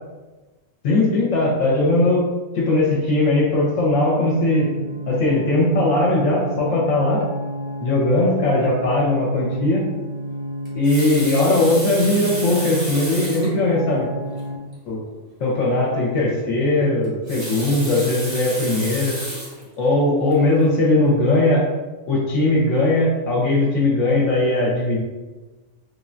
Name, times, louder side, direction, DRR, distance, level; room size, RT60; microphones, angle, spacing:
voice 1, 0.8-2.3 2.5-4.7 5.1-7.2 7.8-9.9 10.7-14.1 14.9-15.0 15.4-19.2 19.8-21.6 22.1-25.0, left 2 dB, 70° left, -4 dB, 0.9 m, -19 dB
sound 1, 3.9-14.6, equal, 85° right, 1.0 m, -31 dB
Water tap faucet, 10.6-13.6 14.3-14.5 14.7-14.8 17.0-19.6 20.3-20.5, right 1 dB, 30° right, 0.6 m, -32 dB
3.3 x 2.1 x 2.5 m, 1.2 s
omnidirectional pair, 1.5 m